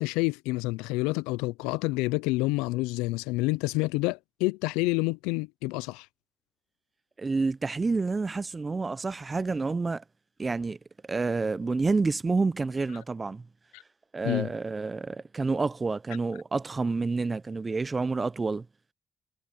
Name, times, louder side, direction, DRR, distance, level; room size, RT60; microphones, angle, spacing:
voice 1, 0.0-6.1 13.7-13.8 14.2-14.5, left 22 dB, 85° left, 0.6 m, -28 dB
voice 2, 7.2-10.0 10.4-10.8 11.1-13.5 14.1-18.7, right 3 dB, 35° right, 0.8 m, -28 dB
hypercardioid pair, 45°, 0 cm